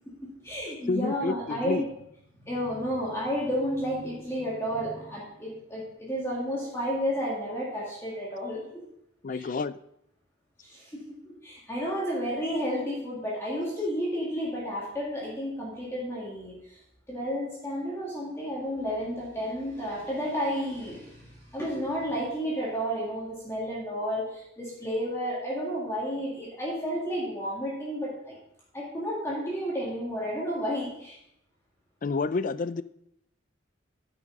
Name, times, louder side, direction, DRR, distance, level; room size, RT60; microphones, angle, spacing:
voice 1, 0.2-1.8 2.4-8.6 9.3-9.5 10.6-16.8 17.1-28.4 28.7-31.2, equal, 15° left, -5 dB, 2.1 m, -32 dB
voice 2, 0.8-1.8 9.2-9.7 32.0-32.8, left 4 dB, 40° left, 16 dB, 0.3 m, -29 dB
9.4 x 6.0 x 5.3 m, 0.78 s
head